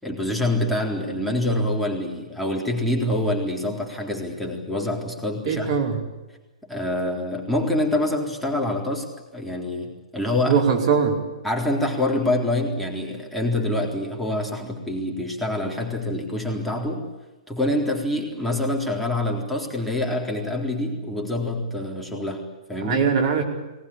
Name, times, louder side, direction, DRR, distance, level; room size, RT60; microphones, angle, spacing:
voice 1, 0.0-5.7 6.6-9.1 9.3-10.6 11.4-17.1 17.5-23.0, left 1 dB, 5° left, -1 dB, 3.8 m, -26 dB
voice 2, 5.4-6.0 10.4-11.2 22.8-23.4, right 6 dB, 50° right, 3 dB, 4.9 m, -21 dB
22.0 x 19.5 x 8.6 m, 1.1 s
figure-of-eight pair, 120°, 4 cm